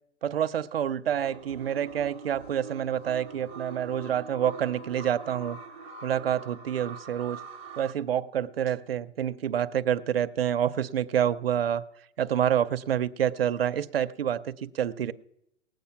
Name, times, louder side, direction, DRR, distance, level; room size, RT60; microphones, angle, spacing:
voice 1, 0.2-5.6 6.0-7.4 7.8-11.8 12.2-15.1, right 9 dB, 50° right, 11 dB, 0.6 m, -28 dB
sound 1, 1.0-7.9, right 5 dB, 10° right, 0.7 m, -43 dB
19.0 x 7.9 x 5.7 m, 0.78 s
hypercardioid pair, 175°, 37 cm